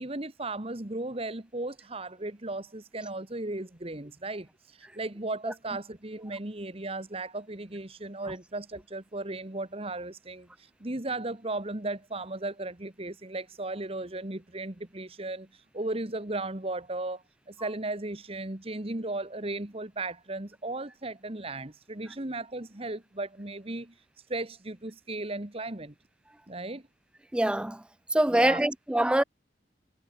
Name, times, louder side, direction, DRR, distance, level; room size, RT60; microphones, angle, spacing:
voice 1, 0.0-4.5 4.8-10.5 10.8-15.5 15.7-23.9 24.3-25.9 26.5-26.9 28.3-28.6, right 2 dB, 35° right, 1.7 m, -36 dB
voice 2, 27.3-27.8 28.1-29.2, right 1 dB, 5° right, 0.3 m, -24 dB
head